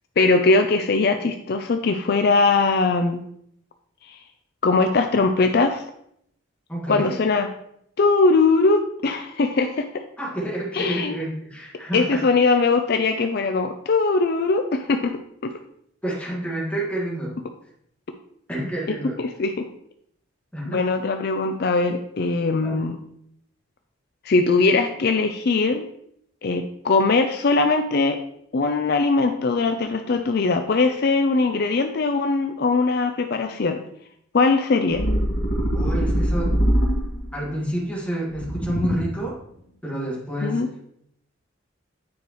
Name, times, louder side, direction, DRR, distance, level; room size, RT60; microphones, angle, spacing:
voice 1, 0.2-3.2 4.1-4.2 4.6-5.8 6.9-7.5 8.0-10.0 10.7-11.2 11.9-15.1 15.4-15.5 19.2-19.7 20.7-23.0 24.2-25.9 26.4-28.2 28.5-33.8 34.3-35.1 40.4-40.7, left 3 dB, 50° left, 6 dB, 0.4 m, -21 dB
voice 2, 6.7-7.2 10.2-12.2 16.0-17.3 18.5-19.2 20.5-20.8 22.6-22.9 35.7-36.6 37.3-39.4 39.8-40.6, right 1 dB, 5° left, -5 dB, 1.8 m, -29 dB
sound 1, 34.9-37.4 38.3-39.3, equal, 75° left, 1.9 m, -23 dB
9.3 x 4.8 x 3.1 m, 0.72 s
head